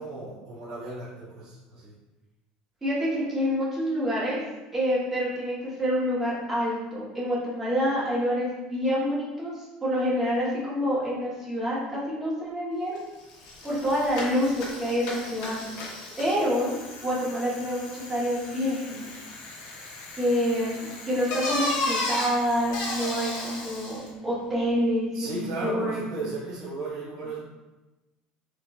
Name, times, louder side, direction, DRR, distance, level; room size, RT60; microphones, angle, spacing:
voice 1, 0.0-1.9 25.1-27.4, right 3 dB, 75° right, -9 dB, 1.3 m, -35 dB
voice 2, 2.8-4.4 4.7-13.0 13.6-15.6 16.2-19.1 20.2-26.0, equal, 10° right, -7 dB, 0.9 m, -27 dB
Bicycle, 13.0-13.1 13.3-24.1, left 2 dB, 80° left, 0.9 m, -35 dB
5.0 x 2.3 x 2.3 m, 1.1 s
cardioid pair, 175°, 3 cm